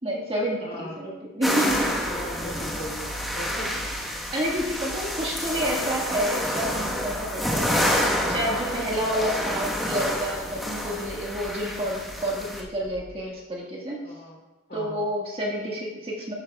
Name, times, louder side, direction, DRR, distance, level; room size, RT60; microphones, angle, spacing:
voice 1, 0.0-1.9 4.3-14.0 14.7-16.3, equal, 25° right, -3 dB, 1.7 m, -29 dB
voice 2, 0.6-1.1 2.1-3.7 14.0-14.4 14.7-15.0, equal, 50° left, -2 dB, 3.4 m, -38 dB
sound 1, 1.4-12.6, equal, ahead, 1.3 m, -28 dB
sound 2, 1.7-13.2, equal, 25° left, 1.0 m, -43 dB
12.5 x 9.4 x 2.4 m, 1.2 s
head